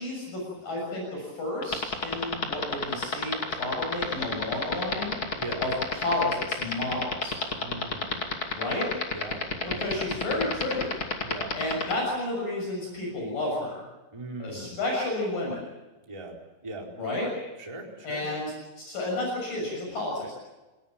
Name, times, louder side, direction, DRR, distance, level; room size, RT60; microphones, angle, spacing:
voice 1, 0.0-7.4 8.5-8.9 9.7-11.0 11.6-13.8 14.4-15.6 17.0-17.3 18.0-20.3, left 2 dB, 50° left, -2 dB, 8.0 m, -31 dB
sound 1, 1.6-11.9, left 5 dB, 35° left, 2.6 m, -28 dB
voice 2, 7.6-8.4 9.1-9.8 11.2-11.5 14.1-14.8 16.1-16.3 16.6-16.9 17.6-18.2, right 2 dB, 5° right, 0 dB, 3.6 m, -39 dB
29.5 x 19.5 x 7.3 m, 1.1 s
omnidirectional pair, 5.1 m